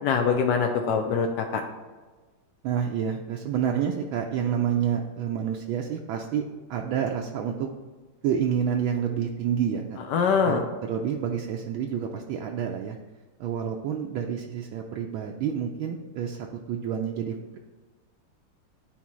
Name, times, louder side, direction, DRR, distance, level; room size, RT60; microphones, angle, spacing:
voice 1, 0.0-1.6 10.1-10.6, left 6 dB, 70° left, 3 dB, 1.0 m, -23 dB
voice 2, 2.6-6.4 6.7-7.7 8.2-10.0 10.4-10.6 10.9-13.0 13.4-17.6, right 8 dB, 75° right, 1 dB, 1.3 m, -28 dB
11.0 x 4.3 x 3.0 m, 1.3 s
omnidirectional pair, 2.4 m